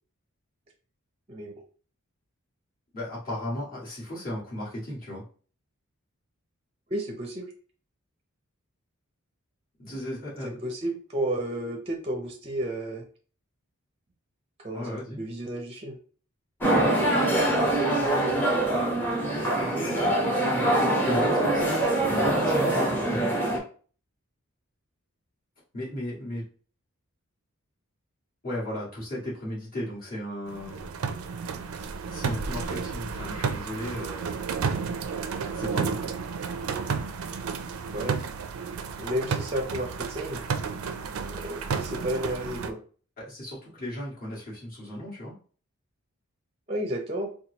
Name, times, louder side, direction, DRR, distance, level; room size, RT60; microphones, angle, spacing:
voice 1, 1.3-1.6 6.9-7.5 10.4-13.0 14.6-16.0 37.8-38.2 39.0-40.4 41.2-42.8 46.7-47.3, right 1 dB, 30° right, 2 dB, 0.5 m, -32 dB
voice 2, 2.9-5.2 9.8-10.5 14.7-15.2 19.3-23.3 25.7-26.4 28.4-30.9 32.1-34.4 35.5-36.1 43.2-45.3, left 1 dB, 40° left, -7 dB, 1.8 m, -36 dB
sound 1, 16.6-23.6, right 1 dB, 10° left, 0.9 m, -24 dB
sound 2, 30.5-42.7, right 5 dB, 80° right, 0.4 m, -32 dB
4.3 x 2.2 x 2.8 m, 0.41 s
head